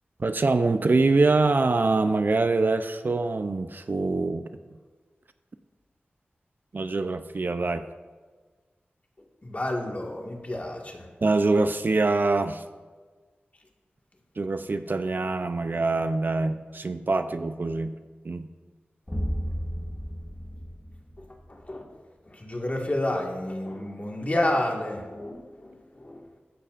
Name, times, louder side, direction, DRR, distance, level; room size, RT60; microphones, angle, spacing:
voice 1, 0.2-4.4 6.7-7.8 11.2-12.6 14.4-17.9 18.2-18.5, right 3 dB, 55° right, 9 dB, 0.5 m, -24 dB
voice 2, 9.4-11.1 21.5-21.8 22.4-26.2, left 1 dB, 35° left, 1 dB, 1.8 m, -30 dB
sound 1, 19.1-21.7, equal, 20° left, 1.8 m, -33 dB
13.5 x 10.0 x 2.5 m, 1.4 s
wide cardioid pair, 60°, 4 cm